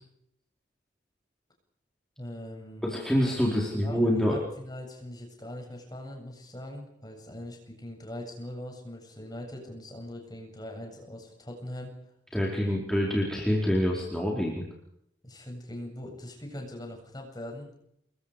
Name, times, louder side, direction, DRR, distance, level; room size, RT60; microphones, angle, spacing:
voice 1, 2.2-3.0 3.8-11.9 12.6-12.8 15.2-17.7, left 1 dB, 20° left, 2 dB, 7.9 m, -41 dB
voice 2, 2.8-4.4 12.3-14.6, equal, 5° left, -3 dB, 4.7 m, -26 dB
29.0 x 22.5 x 5.1 m, 0.73 s
head